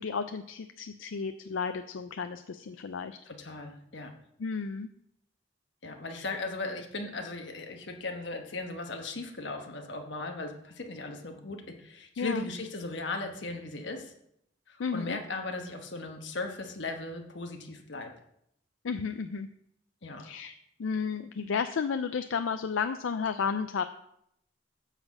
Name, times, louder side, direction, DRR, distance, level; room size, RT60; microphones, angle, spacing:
voice 1, 0.0-3.2 4.4-4.9 6.1-6.3 12.2-12.5 14.8-15.2 18.8-19.5 20.2-20.5 20.8-23.8, left 5 dB, 85° left, 9 dB, 0.4 m, -32 dB
voice 2, 3.2-4.1 5.8-14.1 14.7-18.1 20.0-20.2, left 3 dB, 65° left, 4 dB, 1.3 m, -37 dB
9.9 x 4.2 x 7.3 m, 0.75 s
head